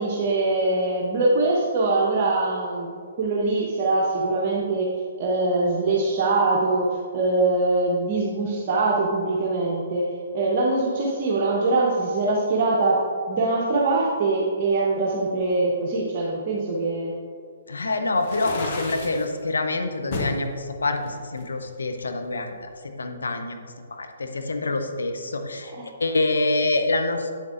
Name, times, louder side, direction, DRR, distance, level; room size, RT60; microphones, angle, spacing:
voice 1, 0.0-6.9 7.1-17.1 25.6-25.9, right 2 dB, 40° right, -4 dB, 0.9 m, -23 dB
voice 2, 17.7-23.6 23.9-25.7 26.0-27.4, left 2 dB, 75° left, 6 dB, 0.7 m, -26 dB
sound 1, 18.2-19.3 20.1-20.4 21.0-22.1, left 2 dB, 45° left, 1.0 m, -32 dB
8.0 x 7.0 x 2.5 m, 2.2 s
figure-of-eight pair, 130°, 0 cm